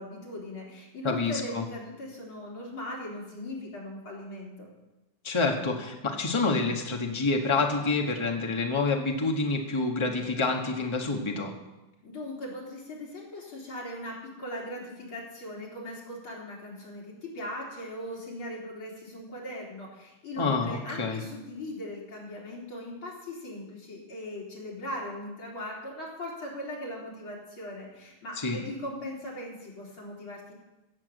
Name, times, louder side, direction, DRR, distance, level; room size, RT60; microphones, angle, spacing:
voice 1, 0.0-4.7 12.0-30.5, left 1 dB, 85° left, -4 dB, 4.6 m, -39 dB
voice 2, 1.0-1.6 5.2-11.5 20.4-21.2 28.4-28.6, left 3 dB, 15° left, 2 dB, 1.4 m, -27 dB
16.0 x 7.4 x 8.1 m, 1.0 s
omnidirectional pair, 2.2 m